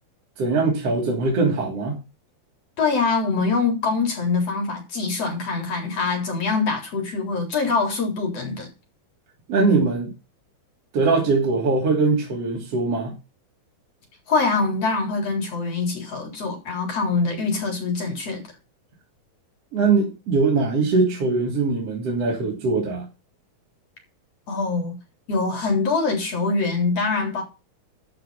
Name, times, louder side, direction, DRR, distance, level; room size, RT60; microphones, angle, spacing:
voice 1, 0.4-2.0 9.5-10.1 10.9-13.1 19.7-23.1, right 3 dB, 50° right, 3.9 m, -21 dB
voice 2, 2.8-8.7 14.3-18.4 24.5-25.0 25.3-27.4, left 4 dB, 50° left, 4.7 m, -24 dB
12.5 x 5.7 x 5.7 m
omnidirectional pair, 3.7 m